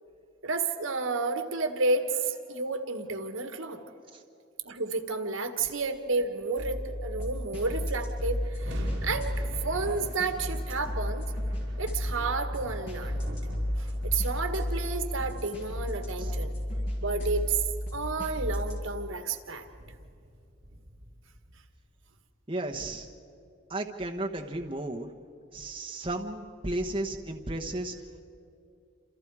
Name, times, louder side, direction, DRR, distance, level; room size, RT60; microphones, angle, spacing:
voice 1, 0.4-3.8 4.6-11.3 11.8-13.2 13.8-17.6 17.9-19.6, right 3 dB, 75° right, 7 dB, 1.6 m, -31 dB
sound 1, 6.6-18.8, equal, 55° left, 6.6 m, -33 dB
sound 2, 7.4-7.5 7.7-22.1, right 1 dB, 55° right, 2.9 m, -47 dB
voice 2, 22.5-23.1 23.7-25.1 25.5-27.9, right 1 dB, 25° right, 1 dB, 1.1 m, -34 dB
28.5 x 27.5 x 4.9 m, 2.5 s
head